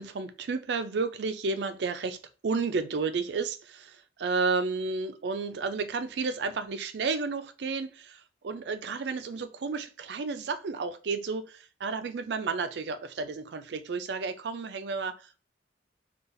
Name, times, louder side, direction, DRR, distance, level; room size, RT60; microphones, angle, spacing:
voice 1, 0.0-15.5, right 4 dB, 75° right, 10 dB, 0.4 m, -32 dB
3.9 x 2.4 x 2.5 m, 0.34 s
head